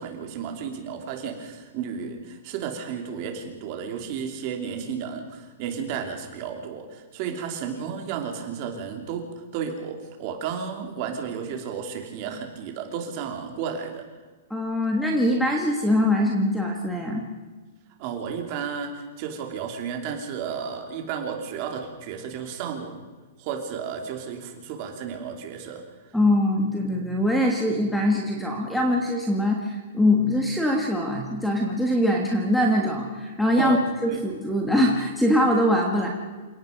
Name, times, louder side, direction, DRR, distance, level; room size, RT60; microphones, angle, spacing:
voice 1, 0.0-9.3 9.5-14.0 18.0-23.0 23.4-25.8 33.6-33.8 34.1-34.2 36.0-36.1, right 7 dB, 30° right, 4 dB, 3.0 m, -33 dB
voice 2, 14.5-17.2 26.1-33.8 34.0-36.1, left 1 dB, ahead, 1 dB, 1.5 m, -23 dB
28.5 x 18.0 x 5.2 m, 1.3 s
hypercardioid pair, 180°, 0 cm